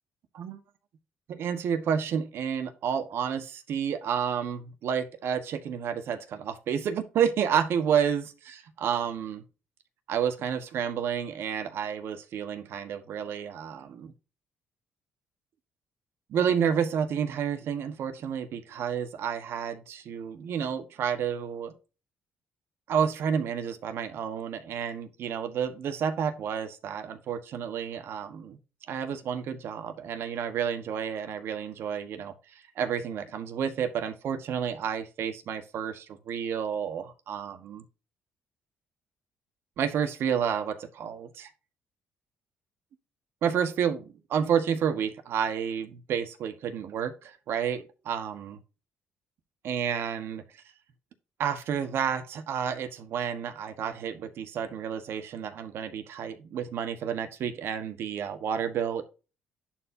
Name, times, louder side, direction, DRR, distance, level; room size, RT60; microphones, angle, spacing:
voice 1, 1.3-9.4 10.1-14.1 16.3-21.7 22.9-28.6 28.9-32.3 32.7-37.8 39.8-41.5 43.4-48.6 49.6-50.4 51.4-59.0, right 8 dB, 65° right, 9 dB, 1.3 m, -30 dB
11.0 x 4.6 x 2.8 m, 0.31 s
cardioid pair, 105°, 4 cm